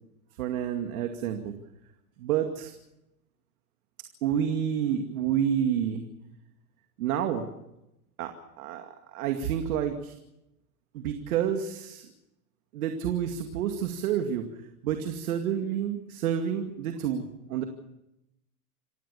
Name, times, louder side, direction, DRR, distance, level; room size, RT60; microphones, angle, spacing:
voice 1, 0.4-1.5 2.2-2.7 4.2-6.1 7.0-7.4 8.2-8.9 9.1-10.1 10.9-12.1 12.7-14.5 14.8-17.6, right 9 dB, 75° right, 5 dB, 2.4 m, -29 dB
28.0 x 15.5 x 7.0 m, 0.89 s
hypercardioid pair, 120°, 44 cm